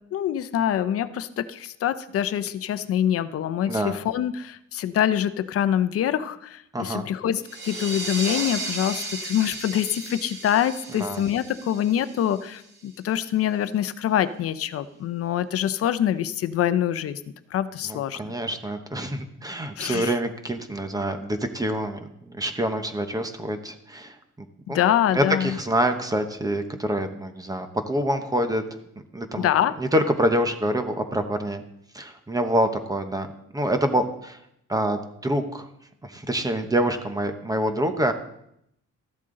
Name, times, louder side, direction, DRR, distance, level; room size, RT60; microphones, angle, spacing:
voice 1, 0.1-17.2 17.5-18.3 19.8-20.1 24.7-25.5 29.4-29.7, left 10 dB, 50° left, 13 dB, 0.7 m, -25 dB
voice 2, 3.7-4.0 6.7-7.1 10.9-11.2 17.9-24.8 25.1-28.6 29.1-29.5 29.8-31.6 31.9-33.3 33.5-34.4 34.7-35.7 36.0-38.1, right 1 dB, 10° right, 7 dB, 0.9 m, -26 dB
sound 1, 7.4-12.8, right 2 dB, 35° right, 3.5 m, -34 dB
14.0 x 11.5 x 3.8 m, 0.75 s
cardioid pair, 155°, 29 cm